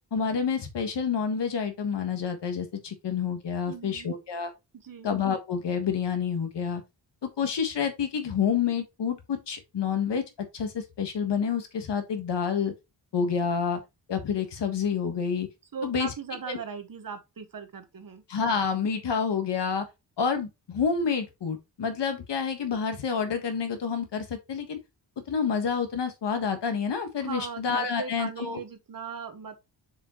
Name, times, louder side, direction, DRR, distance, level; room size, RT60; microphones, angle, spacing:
voice 1, 0.1-4.5 5.0-6.8 7.4-10.2 10.5-12.7 13.1-13.8 14.1-15.5 15.8-16.1 16.5-16.6 18.3-19.8 20.2-24.8 25.3-28.6, left 6 dB, 75° left, 1.5 m, -28 dB
voice 2, 3.6-4.1 4.7-5.1 15.7-18.2 27.2-29.6, right 6 dB, 50° right, 1.2 m, -39 dB
6.7 x 4.9 x 3.0 m
wide cardioid pair, 140°, 42 cm